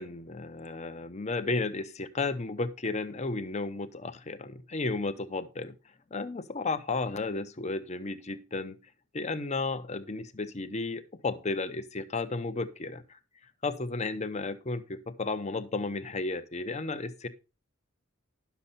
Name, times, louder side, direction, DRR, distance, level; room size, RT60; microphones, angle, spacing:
voice 1, 0.0-5.8 6.1-8.8 9.1-13.0 13.6-17.3, left 3 dB, 35° left, 11 dB, 0.8 m, -33 dB
11.0 x 7.0 x 4.2 m, 0.30 s
head